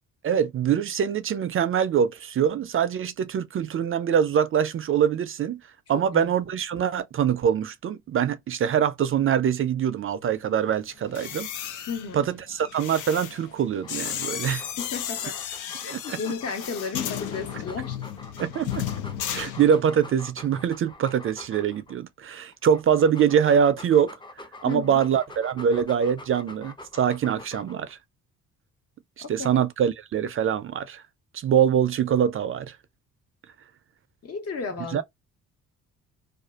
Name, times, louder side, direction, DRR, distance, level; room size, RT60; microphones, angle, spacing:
voice 1, 0.2-5.6 5.9-11.5 12.1-14.6 15.9-16.2 18.4-18.9 19.3-24.1 24.6-28.0 29.2-31.0 31.3-32.8 34.9-35.0, right 8 dB, 45° right, 0.4 m, -24 dB
sound 1, 11.0-20.1 20.4-20.7, left 10 dB, 85° left, 0.6 m, -34 dB
voice 2, 11.9-12.3 14.4-14.5 14.8-15.4 15.8-18.0 24.6-25.0 29.4-29.6 34.2-35.0, left 5 dB, 55° left, 1.3 m, -33 dB
Dog, 13.7-21.9 22.5-27.9, left 2 dB, 15° left, 0.5 m, -45 dB
2.5 x 2.4 x 2.3 m
cardioid pair, 90°, 30 cm